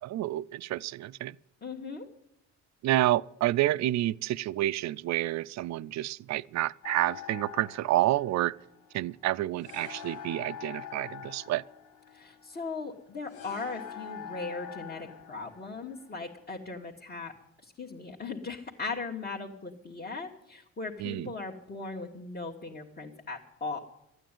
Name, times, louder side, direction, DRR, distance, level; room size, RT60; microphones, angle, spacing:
voice 1, 0.0-1.4 2.8-8.5 8.9-11.6 21.0-21.3, right 15 dB, 65° right, 0.4 m, -29 dB
voice 2, 1.6-2.1 12.1-17.3 17.6-23.8, left 3 dB, 30° left, 1.8 m, -38 dB
sound 1, 6.8-16.8, left 8 dB, 80° left, 1.3 m, -45 dB
13.5 x 9.1 x 9.1 m
cardioid pair, 90°, 30 cm